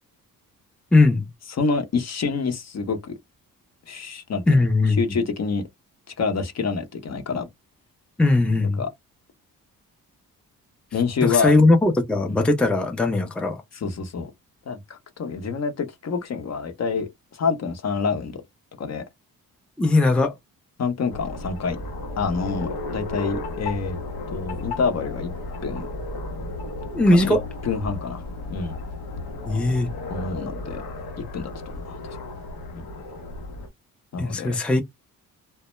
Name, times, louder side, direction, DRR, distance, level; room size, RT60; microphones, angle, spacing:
voice 1, 0.9-1.3 4.5-5.0 8.2-8.8 11.2-13.6 19.8-20.3 26.9-27.4 29.5-29.9 34.2-34.8, left 2 dB, 5° left, 0.5 m, -19 dB
voice 2, 1.5-3.1 3.9-4.6 5.0-5.6 6.2-7.5 8.8-8.9 10.9-11.5 12.3-12.4 13.7-14.3 14.7-18.4 18.8-19.0 20.8-21.8 22.2-24.0 24.3-25.3 25.6-25.9 27.1-27.3 27.6-28.2 28.5-28.8 30.1-30.8 31.3-31.5 31.9-32.2 32.7-32.8 34.1-34.6, left 5 dB, 50° left, 0.8 m, -27 dB
sound 1, 21.1-33.7, left 2 dB, 90° left, 0.9 m, -34 dB
2.1 x 2.0 x 3.0 m
cardioid pair, 75°, 35 cm